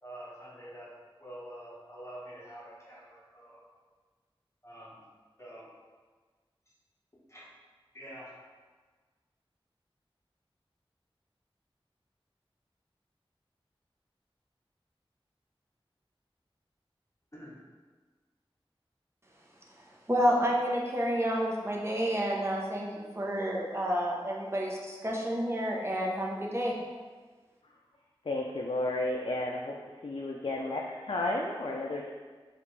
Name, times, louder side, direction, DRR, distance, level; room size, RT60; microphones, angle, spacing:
voice 1, 0.0-0.9 1.2-3.6 4.6-5.0 5.4-5.7 7.3-7.4 7.9-8.3 17.3-17.6 30.2-30.7, right 1 dB, 30° left, -7 dB, 1.0 m, -47 dB
voice 2, 20.1-26.8, equal, 25° right, -3 dB, 0.8 m, -29 dB
voice 3, 28.3-29.8 30.0-32.1, left 2 dB, 65° left, -1 dB, 0.4 m, -32 dB
5.0 x 2.4 x 3.2 m, 1.4 s
wide cardioid pair, 40°, 10 cm